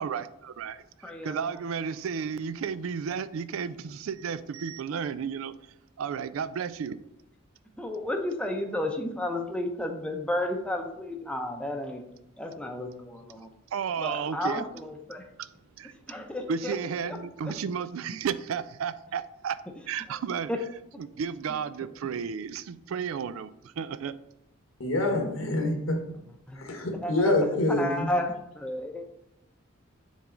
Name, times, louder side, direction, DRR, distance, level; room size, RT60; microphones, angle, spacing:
voice 1, 1.3-5.5 6.0-7.0 13.7-14.6 15.4-15.5 15.8-15.9 16.5-19.6 19.9-20.5 21.0-24.1, right 6 dB, 85° right, 0.4 m, -32 dB
voice 2, 7.8-12.0 12.4-13.5 14.0-15.2 16.1-16.8 17.0-17.2 17.4-17.5 20.5-20.6 26.5-26.7 27.0-27.3 27.7-29.1, left 1 dB, 5° left, 0.6 m, -32 dB
voice 3, 24.8-26.0 26.5-28.1, left 2 dB, 80° left, 1.2 m, -26 dB
7.2 x 3.6 x 3.8 m
head